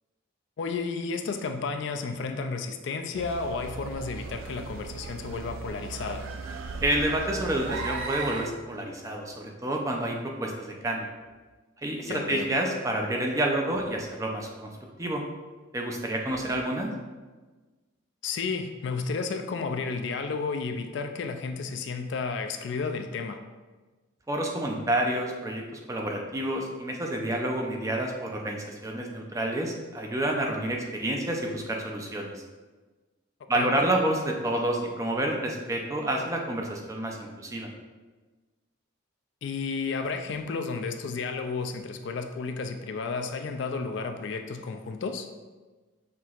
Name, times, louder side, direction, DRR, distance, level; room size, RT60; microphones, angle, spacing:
voice 1, 0.6-6.3 12.1-12.5 18.2-23.4 33.5-33.7 39.4-45.3, left 4 dB, 60° left, 6 dB, 0.3 m, -32 dB
sound 1, 3.1-8.5, right 4 dB, 85° right, 0.4 m, -37 dB
voice 2, 6.8-11.1 11.8-14.7 15.0-15.2 15.7-16.9 24.3-25.6 25.9-32.4 33.5-37.7, right 1 dB, 15° right, 1 dB, 0.4 m, -29 dB
5.8 x 2.8 x 2.4 m, 1.3 s
head